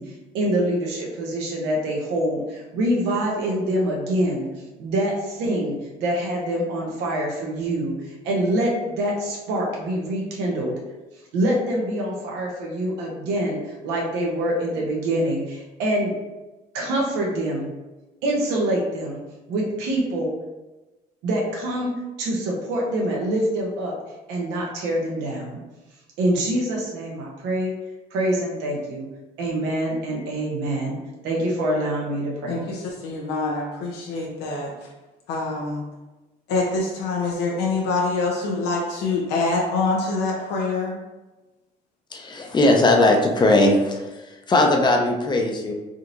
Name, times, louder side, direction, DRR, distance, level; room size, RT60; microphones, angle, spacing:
voice 1, 0.0-4.5 4.8-10.8 11.3-16.1 16.7-17.7 18.2-19.2 19.5-20.3 21.2-23.9 24.3-25.6 26.2-27.7 28.1-29.0 29.4-31.0 31.2-32.7, right 1 dB, 90° right, -2 dB, 0.9 m, -25 dB
voice 2, 32.5-34.9 35.3-35.8 36.5-41.0, left 3 dB, 90° left, -2 dB, 0.7 m, -25 dB
voice 3, 42.1-44.1 44.5-45.7, left 2 dB, 25° left, 2 dB, 0.6 m, -18 dB
3.6 x 2.6 x 2.9 m, 1.1 s
cardioid pair, 110°, 17 cm